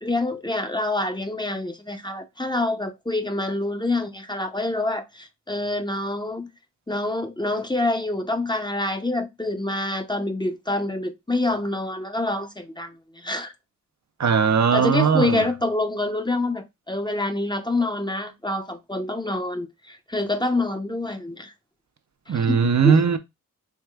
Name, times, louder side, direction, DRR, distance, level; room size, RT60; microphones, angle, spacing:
voice 1, 0.0-6.5 6.9-13.5 14.7-21.5 22.3-23.0, left 2 dB, 15° left, 0.6 m, -26 dB
voice 2, 14.2-15.5 22.3-23.2, right 6 dB, 55° right, 0.6 m, -19 dB
4.7 x 3.2 x 2.3 m
cardioid pair, 55°, 34 cm